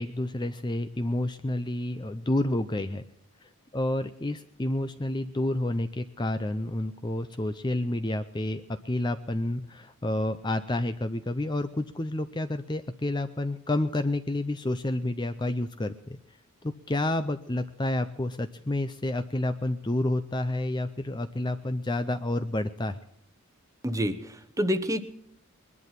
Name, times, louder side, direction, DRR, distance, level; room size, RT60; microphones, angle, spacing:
voice 1, 0.0-3.1 3.4-16.2 16.6-23.0, left 1 dB, 20° left, 9 dB, 0.5 m, -29 dB
voice 2, 23.8-25.0, equal, 15° right, 11 dB, 1.0 m, -28 dB
21.5 x 11.0 x 5.8 m, 0.73 s
head